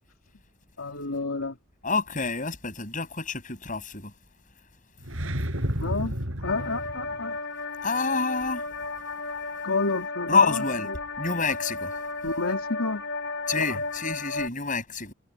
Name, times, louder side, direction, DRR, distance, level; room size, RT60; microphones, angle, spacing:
voice 1, 0.8-1.6 5.6-7.4 9.6-11.0 12.2-13.0 13.5-13.8, left 3 dB, 80° left, 2.8 m, -30 dB
voice 2, 1.8-4.1 7.8-8.6 10.3-10.9 11.2-11.9 13.5-15.1, left 4 dB, 35° left, 6.8 m, -27 dB
sound 1, 5.0-7.2, equal, 65° right, 6.7 m, -31 dB
sound 2, 6.4-14.5, left 3 dB, 55° left, 4.9 m, -34 dB
head